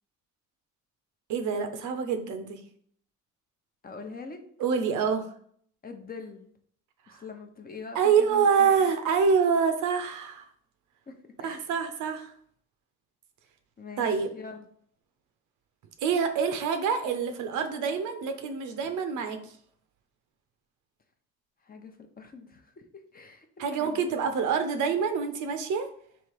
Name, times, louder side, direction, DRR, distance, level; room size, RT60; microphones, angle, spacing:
voice 1, 1.3-2.6 4.6-5.2 7.9-10.5 11.4-12.3 14.0-14.3 16.0-19.4 23.6-25.9, right 6 dB, 80° right, 7 dB, 0.7 m, -26 dB
voice 2, 3.8-4.4 5.8-6.5 7.1-8.9 11.1-11.6 13.8-14.1 14.3-14.7 21.7-24.1, left 4 dB, 30° left, 5 dB, 0.6 m, -44 dB
3.1 x 2.9 x 4.6 m, 0.62 s
cardioid pair, 90°, 30 cm